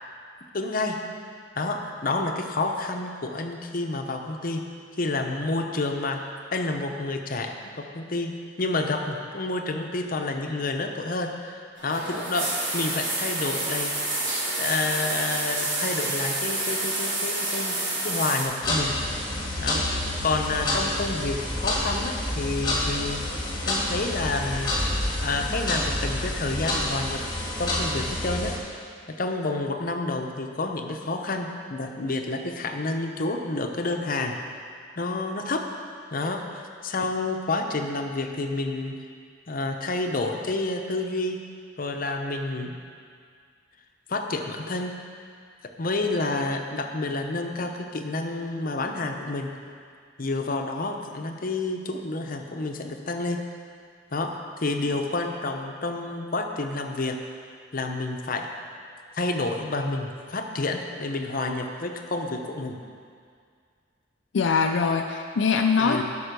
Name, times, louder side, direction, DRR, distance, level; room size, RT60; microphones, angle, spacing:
voice 1, 0.5-1.0 1.5-4.6 5.0-6.2 6.5-8.3 8.6-13.9 14.6-17.8 18.0-19.0 19.6-23.2 23.7-24.7 25.2-27.2 27.6-28.5 29.1-34.4 35.0-35.6 36.1-39.0 39.5-41.4 41.8-42.7 44.1-44.9 45.8-49.5 50.2-53.4 54.1-57.2 57.7-58.5 59.1-62.8 65.8-66.0, left 2 dB, 50° left, 4 dB, 0.8 m, -29 dB
sound 1, 11.8-18.4, right 2 dB, 80° right, 2.8 m, -28 dB
sound 2, 18.6-28.6, left 1 dB, 25° left, 1.7 m, -28 dB
voice 2, 64.3-66.0, left 5 dB, 70° left, 4 dB, 0.4 m, -22 dB
10.5 x 5.5 x 6.7 m, 2.2 s
head